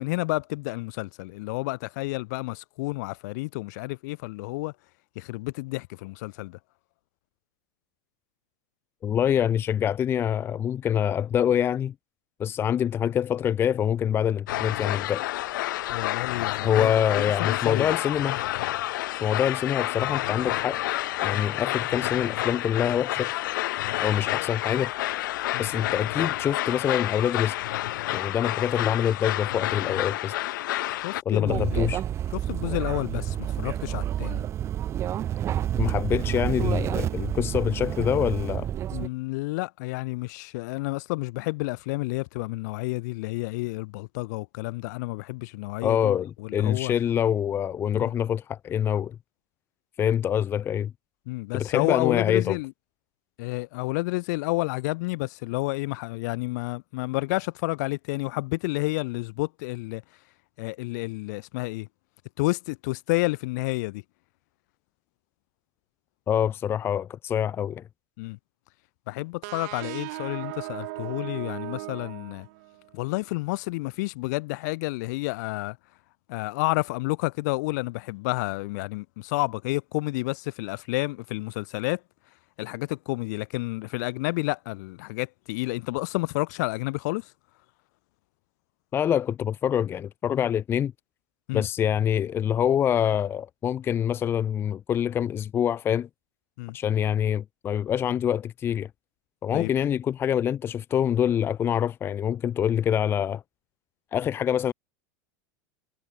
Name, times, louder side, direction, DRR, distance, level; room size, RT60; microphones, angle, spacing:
voice 1, 0.0-4.7 5.2-6.6 15.9-17.9 21.3-21.4 25.5-25.7 31.0-31.9 32.3-34.4 38.9-46.9 47.9-48.1 51.3-52.7 53.4-60.0 60.6-61.9 62.4-64.0 68.2-68.4 69.1-72.5 72.9-75.8 76.3-82.0 82.6-87.3 91.5-91.7 96.6-96.8 99.5-99.7, left 23 dB, 60° left, 3.5 m, -30 dB
voice 2, 9.0-11.9 12.4-15.3 16.6-18.4 19.2-20.8 21.2-23.3 24.0-24.9 25.6-27.6 28.1-30.3 31.3-32.0 35.8-38.7 45.8-49.2 50.0-50.9 51.5-52.6 66.3-67.8 88.9-90.9 91.5-96.1 96.7-98.9 99.4-103.4 104.1-104.7, left 9 dB, 20° left, 0.7 m, -25 dB
sound 1, 14.5-31.2, left 16 dB, 80° left, 0.8 m, -29 dB
sound 2, 31.5-39.1, right 11 dB, 25° right, 1.0 m, -29 dB
sound 3, 69.4-73.0, right 25 dB, 60° right, 5.6 m, -37 dB
supercardioid pair, 155°, 10 cm